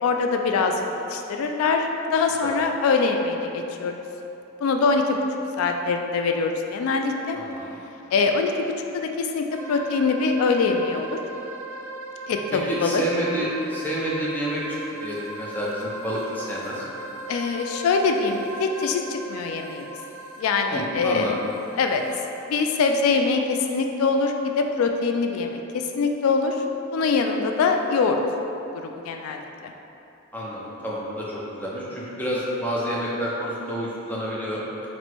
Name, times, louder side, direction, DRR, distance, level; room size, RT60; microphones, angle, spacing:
voice 1, 0.0-0.8 1.1-3.9 4.6-5.2 5.6-7.4 8.1-8.5 8.9-11.2 12.3-13.0 17.3-19.9 20.4-21.3 21.8-22.0 22.5-26.6 26.9-28.2 28.7-29.7, left 4 dB, 90° left, 5 dB, 0.3 m, -23 dB
voice 2, 7.3-7.8 12.6-14.6 15.0-16.9 20.7-21.4 30.3-31.2 31.5-34.6, equal, 10° left, -6 dB, 0.5 m, -29 dB
sound 1, 9.5-23.1, right 2 dB, 80° right, 0.4 m, -39 dB
4.2 x 2.1 x 4.3 m, 3.0 s
head